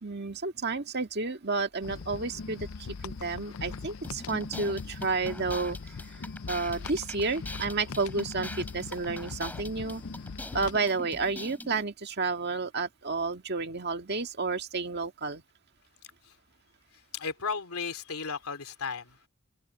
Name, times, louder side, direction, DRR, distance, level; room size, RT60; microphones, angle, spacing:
voice 1, 0.0-2.7 3.0-5.8 6.5-10.0 10.5-15.4, right 3 dB, 50° right, 1.9 m, -31 dB
sound 1, 1.8-10.8, left 4 dB, 70° left, 0.6 m, -41 dB
sound 2, 4.0-11.8, left 1 dB, 10° left, 3.8 m, -44 dB
voice 2, 16.9-19.3, left 5 dB, 90° left, 2.9 m, -35 dB
head